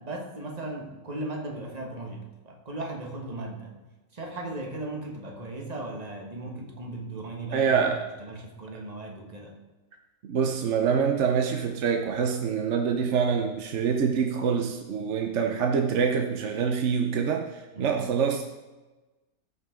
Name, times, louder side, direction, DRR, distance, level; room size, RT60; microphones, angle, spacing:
voice 1, 0.0-3.8 4.1-7.9 8.2-9.5 17.7-18.0, right 2 dB, 30° right, 1 dB, 1.4 m, -37 dB
voice 2, 7.5-8.1 10.3-18.4, right 6 dB, 60° right, 3 dB, 1.0 m, -25 dB
14.0 x 5.5 x 3.7 m, 1.2 s
omnidirectional pair, 1.5 m